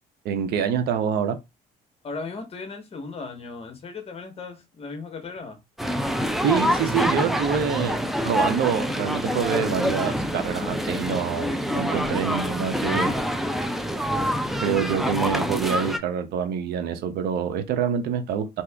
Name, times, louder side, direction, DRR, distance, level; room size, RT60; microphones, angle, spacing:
voice 1, 0.2-1.4 6.4-13.2 14.6-18.6, right 7 dB, 70° right, 0.6 m, -26 dB
voice 2, 2.0-5.6, left 4 dB, 35° left, 1.0 m, -36 dB
sound 1, 5.8-16.0, equal, ahead, 0.4 m, -26 dB
2.7 x 2.4 x 3.4 m
cardioid pair, 110°, 17 cm